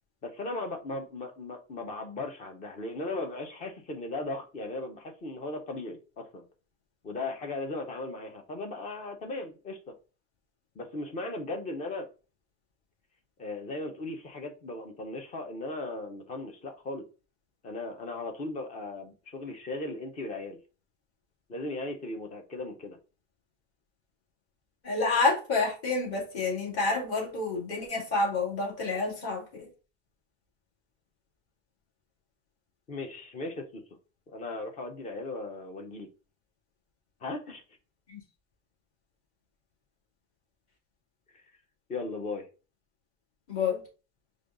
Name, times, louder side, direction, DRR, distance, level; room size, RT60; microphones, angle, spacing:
voice 1, 0.2-6.4 7.0-9.9 10.8-12.1 13.4-17.0 17.6-20.6 21.5-23.0 32.9-33.8 34.3-36.1 37.2-37.6 41.3-41.4 41.9-42.5, left 2 dB, 20° left, 0.5 m, -37 dB
voice 2, 24.8-29.7 38.1-38.2 43.5-43.8, left 3 dB, 35° left, 2.3 m, -28 dB
4.9 x 2.3 x 3.7 m
supercardioid pair, 150°, 41 cm